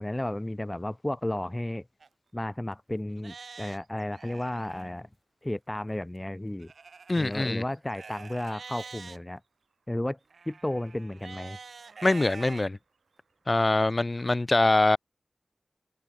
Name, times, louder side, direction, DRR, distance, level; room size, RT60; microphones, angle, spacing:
voice 1, 0.0-1.8 2.3-5.1 5.4-6.7 7.1-9.4 9.9-10.2 10.5-11.6, left 1 dB, 20° left, 1.2 m, -33 dB
Livestock farm animals working animals, 2.0-2.1 2.7-2.8 3.2-4.9 6.6-9.2 10.3-12.6 13.2-13.3 13.9-14.0, right 5 dB, 85° right, 3.9 m, -46 dB
voice 2, 7.1-7.6 12.0-12.8 13.5-15.0, left 2 dB, 40° left, 2.0 m, -23 dB
cardioid pair, 45°, 0 cm